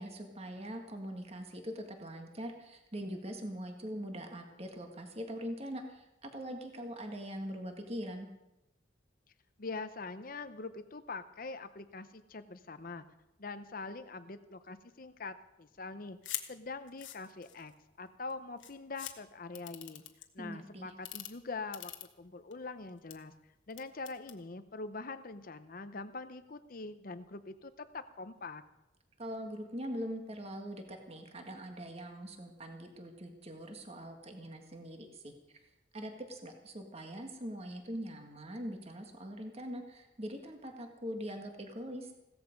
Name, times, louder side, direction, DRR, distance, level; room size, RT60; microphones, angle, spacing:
voice 1, 0.0-8.3 20.4-20.9 29.2-35.3 35.9-42.1, equal, 35° right, 4 dB, 1.7 m, -42 dB
voice 2, 9.6-13.1 13.4-16.2 16.5-20.0 20.3-21.9 22.2-23.3 23.7-28.6, left 3 dB, 50° left, 10 dB, 0.7 m, -43 dB
sound 1, 16.2-16.5 16.9-17.7 18.3-18.4 18.6-19.1 19.5-20.2 20.9-21.3 21.7-22.5 22.9-23.1 23.7-24.4, left 13 dB, 85° left, 1.3 m, -42 dB
16.5 x 14.0 x 5.2 m, 0.93 s
head